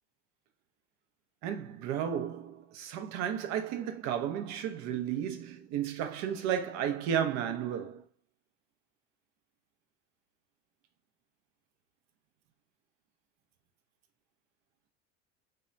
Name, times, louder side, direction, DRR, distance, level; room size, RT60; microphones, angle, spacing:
voice 1, 1.4-8.0, right 9 dB, 55° right, 0.6 m, -33 dB
2.7 x 2.2 x 2.4 m
supercardioid pair, 100°, 34 cm